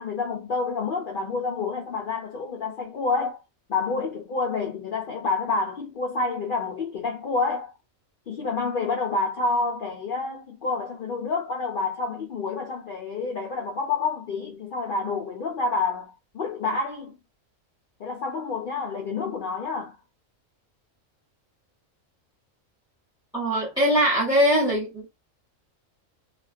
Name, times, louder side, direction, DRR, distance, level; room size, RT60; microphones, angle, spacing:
voice 1, 0.0-3.4 3.7-7.7 8.3-17.2 18.0-20.0, left 4 dB, 70° left, 0.5 m, -28 dB
voice 2, 23.3-25.1, equal, 5° right, 0.5 m, -21 dB
2.4 x 2.2 x 2.4 m
omnidirectional pair, 1.4 m